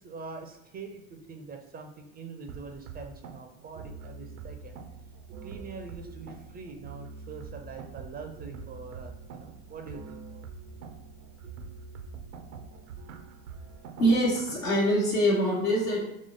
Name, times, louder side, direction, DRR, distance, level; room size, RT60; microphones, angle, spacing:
voice 1, 0.0-4.8 5.4-10.4, right 4 dB, 25° right, 4 dB, 0.4 m, -44 dB
sound 1, 2.5-14.6, right 5 dB, 75° right, 0.5 m, -44 dB
voice 2, 14.0-16.0, equal, 80° left, -6 dB, 1.3 m, -24 dB
3.6 x 3.1 x 3.8 m, 0.85 s
figure-of-eight pair, 65°, 41 cm